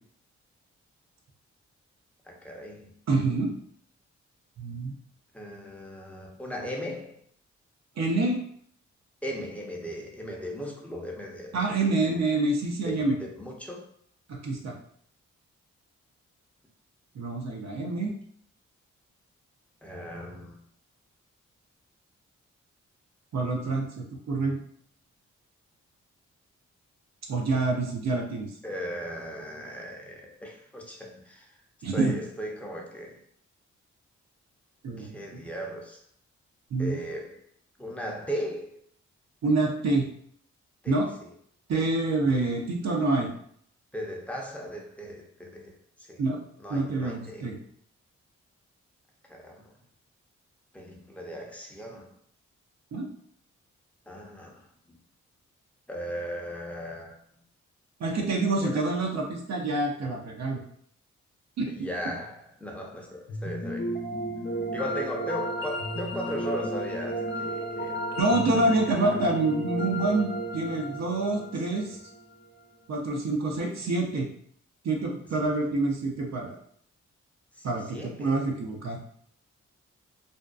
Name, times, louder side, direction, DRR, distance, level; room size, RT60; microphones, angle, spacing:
voice 1, 2.3-2.9 5.3-7.2 9.2-11.9 12.8-13.9 19.8-20.6 28.6-31.5 31.9-33.2 35.0-36.0 36.8-37.4 37.8-38.8 40.8-41.0 43.9-45.7 46.1-46.2 46.6-47.5 49.3-49.6 50.7-52.1 54.1-55.0 55.9-57.2 58.6-58.8 61.7-64.0 64.7-69.2 71.7-72.0 75.4-75.5 77.6-77.7 77.9-78.4, equal, 5° left, -1 dB, 0.7 m, -37 dB
voice 2, 3.1-3.5 4.6-4.9 8.0-8.4 11.5-13.2 14.3-14.8 17.1-18.1 23.3-24.6 27.3-28.5 31.8-32.1 34.8-35.4 36.7-37.0 39.4-40.1 40.9-41.1 41.7-43.3 46.2-46.4 46.7-47.6 52.9-53.1 58.0-60.6 61.6-61.9 68.2-72.0 72.9-74.3 74.8-76.6 77.6-79.0, right 2 dB, 60° right, 0 dB, 0.6 m, -27 dB
sound 1, 63.3-72.4, right 1 dB, 40° left, 0.6 m, -33 dB
2.6 x 2.1 x 2.3 m, 0.64 s
supercardioid pair, 45°, 31 cm